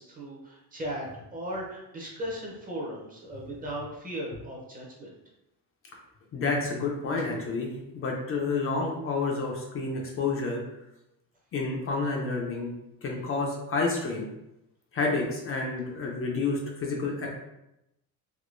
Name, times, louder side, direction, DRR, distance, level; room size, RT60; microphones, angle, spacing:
voice 1, 0.0-5.1, equal, 20° right, -2 dB, 0.7 m, -37 dB
voice 2, 6.3-10.6 11.5-12.7 13.0-14.3 14.9-17.3, left 3 dB, 35° left, 0 dB, 0.5 m, -29 dB
3.6 x 2.7 x 2.5 m, 0.88 s
cardioid pair, 155°, 41 cm